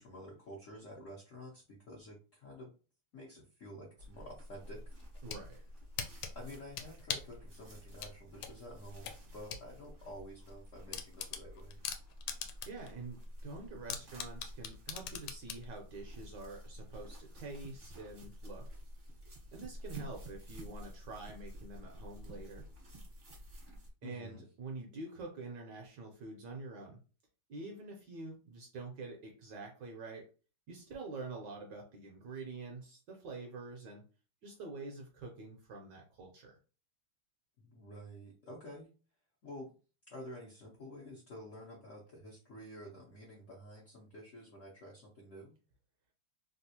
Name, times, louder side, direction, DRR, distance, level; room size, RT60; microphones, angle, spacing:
voice 1, 0.0-2.7 3.1-5.0 6.3-11.8 24.0-24.4 37.6-38.9 39.4-39.7 40.1-45.5, equal, 65° left, -4 dB, 0.7 m, -50 dB
sound 1, 4.0-23.9, equal, 45° right, 0.7 m, -50 dB
sound 2, 5.0-5.4 6.0-7.4 8.0-9.7 10.0-10.1 10.5-10.6 10.9-12.9 13.2-13.3 13.9-15.6, left 8 dB, 80° left, 1.4 m, -40 dB
voice 2, 5.2-5.6 12.7-18.7 19.5-22.7 24.0-27.0 27.5-30.3 30.7-34.0 34.4-36.6, right 3 dB, 70° right, 1 dB, 1.1 m, -46 dB
3.5 x 2.4 x 2.7 m, 0.34 s
omnidirectional pair, 2.4 m